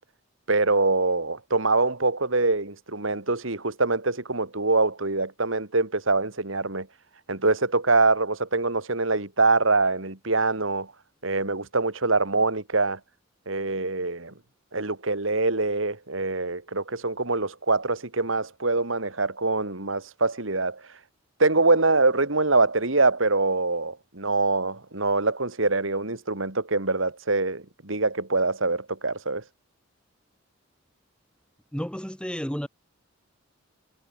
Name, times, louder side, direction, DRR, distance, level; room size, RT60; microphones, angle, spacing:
voice 1, 0.5-6.9 7.3-10.9 11.2-13.0 13.5-14.3 14.7-20.8 21.4-29.4, right 3 dB, 75° right, 2.9 m, -24 dB
voice 2, 31.7-32.7, equal, 5° left, 2.7 m, -31 dB
head